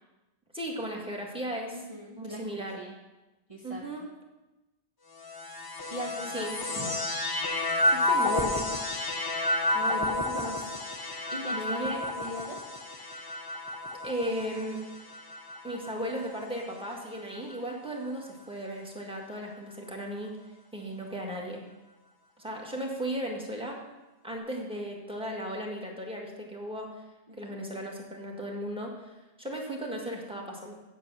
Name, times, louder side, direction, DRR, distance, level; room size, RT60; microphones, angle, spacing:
voice 1, 0.5-1.8 2.2-2.8 3.6-4.1 6.3-6.9 7.9-8.8 9.7-10.7 11.5-12.0 14.0-14.9 15.6-20.4 20.7-21.6 22.4-23.8 24.2-27.0 27.4-30.7, equal, 5° right, -1 dB, 1.7 m, -36 dB
voice 2, 1.7-2.9 3.5-3.8 5.9-6.9 11.3-12.6 27.3-27.5, equal, 35° right, -3 dB, 1.1 m, -41 dB
sound 1, 5.2-16.7 17.4-18.2, left 2 dB, 20° left, 0.9 m, -31 dB
8.2 x 8.2 x 6.2 m, 1.1 s
omnidirectional pair, 1.1 m